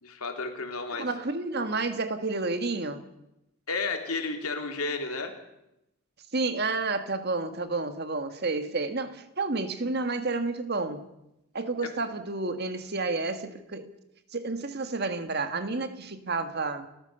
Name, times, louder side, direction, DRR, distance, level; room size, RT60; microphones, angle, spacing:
voice 1, 0.0-1.1 3.7-5.3, left 3 dB, 85° left, 3.5 m, -32 dB
voice 2, 1.0-3.0 6.3-11.0 11.5-13.9 14.3-16.9, right 3 dB, 45° right, 1.6 m, -30 dB
29.5 x 14.5 x 6.9 m
head